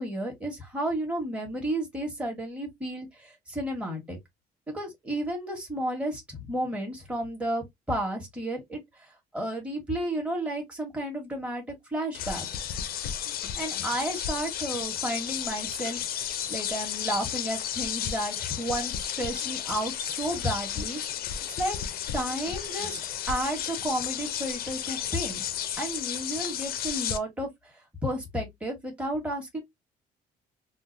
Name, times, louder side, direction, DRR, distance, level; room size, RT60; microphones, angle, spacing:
voice 1, 0.0-4.2 4.7-9.1 9.3-11.6 11.9-12.5 13.5-21.0 21.5-21.8 22.1-23.0 23.3-25.4 25.8-27.7 28.0-29.6, right 1 dB, 5° right, 1.4 m, -32 dB
sound 1, 12.1-27.2, left 9 dB, 65° left, 0.6 m, -33 dB
3.8 x 2.4 x 2.6 m
cardioid pair, 110°, 17 cm